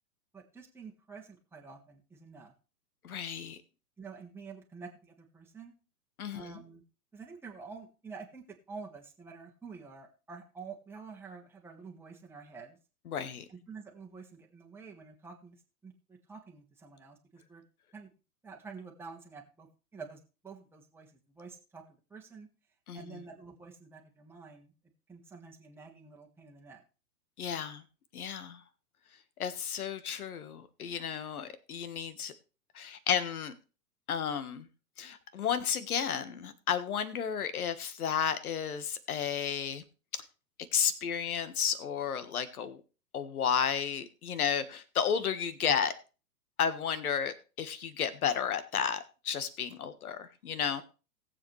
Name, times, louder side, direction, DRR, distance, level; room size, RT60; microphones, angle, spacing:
voice 1, 0.3-2.5 4.0-5.7 6.3-6.8 7.1-12.8 13.5-15.6 15.8-17.6 17.9-18.1 18.4-21.8 22.1-22.5 22.9-24.7 25.1-26.8, right 5 dB, 5° right, 0 dB, 1.8 m, -48 dB
voice 2, 3.0-3.6 6.2-6.5 13.1-13.4 22.9-23.2 27.4-27.8 28.1-28.6 29.4-32.3 32.7-33.5 34.1-34.7 35.0-39.8 40.1-40.2 40.7-42.8 43.1-45.9 46.6-50.8, left 7 dB, 65° left, 13 dB, 1.6 m, -32 dB
18.5 x 7.5 x 3.3 m, 0.33 s
figure-of-eight pair, 115°, 47 cm